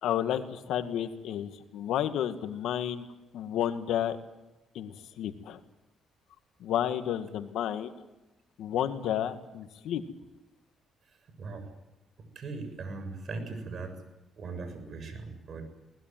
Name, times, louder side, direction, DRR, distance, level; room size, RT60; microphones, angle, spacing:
voice 1, 0.0-3.0 3.3-4.2 4.7-5.6 6.6-7.9 8.6-10.0, left 10 dB, 80° left, 9 dB, 2.0 m, -31 dB
voice 2, 12.4-14.0 14.4-15.6, right 3 dB, 55° right, 8 dB, 7.4 m, -39 dB
22.5 x 20.0 x 9.3 m, 1.0 s
cardioid pair, 90°, 0 cm